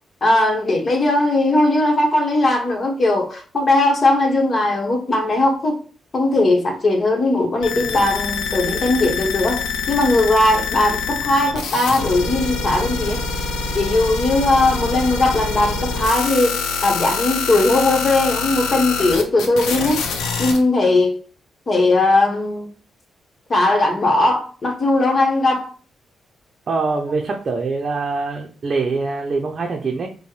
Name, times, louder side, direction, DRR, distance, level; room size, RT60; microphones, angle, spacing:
voice 1, 0.2-5.8 6.1-9.6 9.9-13.2 13.7-20.0 20.4-21.1 21.7-22.7 23.5-25.7, left 2 dB, 45° left, 1.2 m, -18 dB
sound 1, 7.6-20.6, left 4 dB, 85° left, 0.6 m, -25 dB
voice 2, 26.7-30.1, right 4 dB, 55° right, 0.6 m, -23 dB
4.3 x 2.2 x 3.2 m
supercardioid pair, 50°, 0 cm